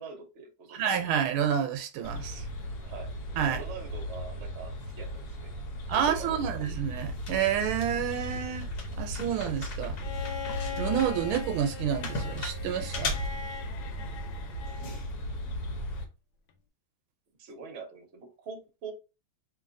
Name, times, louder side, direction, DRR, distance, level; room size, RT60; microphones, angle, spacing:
voice 1, 0.0-0.8 2.8-3.1 3.4-5.5 5.9-6.6 17.4-18.9, right 4 dB, 50° right, 0.9 m, -44 dB
voice 2, 0.7-2.4 3.4-3.6 5.9-8.7 9.0-10.0 10.8-13.1, right 8 dB, 80° right, 1.4 m, -29 dB
sound 1, 2.0-16.0, equal, 55° left, 1.4 m, -36 dB
Bowed string instrument, 10.0-15.0 16.5-16.6, left 8 dB, 75° left, 1.3 m, -41 dB
4.4 x 3.2 x 2.6 m
omnidirectional pair, 2.4 m